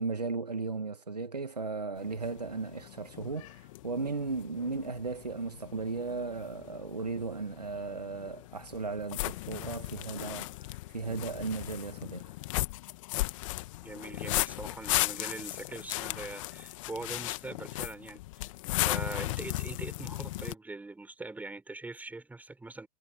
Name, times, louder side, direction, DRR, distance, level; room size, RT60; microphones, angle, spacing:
voice 1, 0.0-10.5 10.9-12.3, right 4 dB, 90° right, 2.4 m, -36 dB
sound 1, 2.0-20.5, left 19 dB, 55° left, 1.7 m, -36 dB
voice 2, 13.8-18.5 18.7-22.9, right 2 dB, 10° right, 4.6 m, -42 dB
figure-of-eight pair, 95°, 20 cm